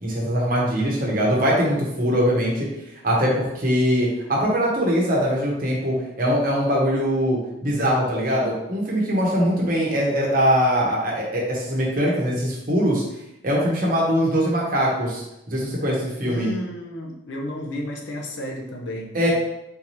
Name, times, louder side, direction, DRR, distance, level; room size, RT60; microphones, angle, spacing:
voice 1, 0.0-2.7 3.0-13.0 13.4-16.5 19.1-19.3, equal, 45° right, -3 dB, 0.9 m, -22 dB
voice 2, 16.2-19.3, left 1 dB, 75° left, -1 dB, 0.7 m, -32 dB
3.7 x 2.7 x 3.1 m, 0.88 s
head